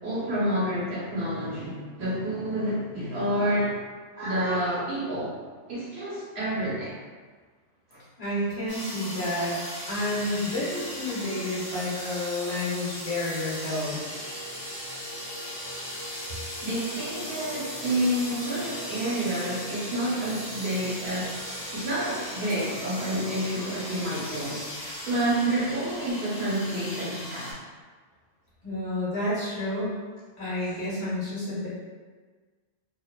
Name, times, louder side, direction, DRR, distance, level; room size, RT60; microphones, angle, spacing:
voice 1, 0.0-3.8 4.1-5.3 5.7-6.9 7.9-8.0 12.0-12.1 16.6-21.4 21.7-27.5 30.6-30.8, right 1 dB, 70° right, -8 dB, 1.2 m, -29 dB
voice 2, 8.2-9.6 9.9-14.0 28.6-30.0 30.4-31.7, left 1 dB, 65° left, -9 dB, 1.2 m, -30 dB
sound 1, 8.7-27.5, equal, 90° left, 1.2 m, -38 dB
sound 2, 9.8-11.3 13.5-23.7, right 2 dB, 30° left, 1.2 m, -46 dB
sound 3, 21.1-26.1, equal, 10° right, 0.6 m, -49 dB
2.9 x 2.1 x 2.3 m, 1.4 s
omnidirectional pair, 1.1 m